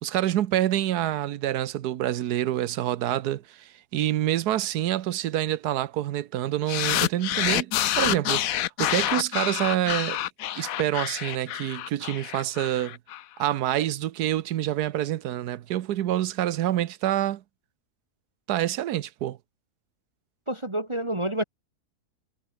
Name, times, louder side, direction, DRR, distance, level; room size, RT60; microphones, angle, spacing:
voice 1, 0.0-10.2 10.6-13.0 13.4-17.4 18.5-19.4, right 12 dB, 80° right, 1.3 m, -27 dB
sound 1, 6.7-13.2, left 13 dB, 70° left, 1.1 m, -27 dB
voice 2, 20.5-21.4, right 1 dB, 20° right, 1.8 m, -28 dB
omnidirectional pair, 1.7 m